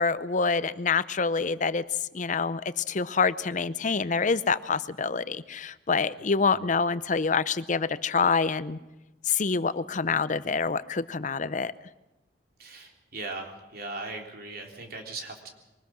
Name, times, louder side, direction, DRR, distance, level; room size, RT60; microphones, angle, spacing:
voice 1, 0.0-1.8 2.1-8.8 9.3-11.7, left 5 dB, 45° left, 15 dB, 0.7 m, -26 dB
voice 2, 6.2-6.5 12.6-15.5, right 3 dB, 55° right, 2 dB, 3.6 m, -39 dB
23.5 x 19.5 x 6.2 m, 1.0 s
head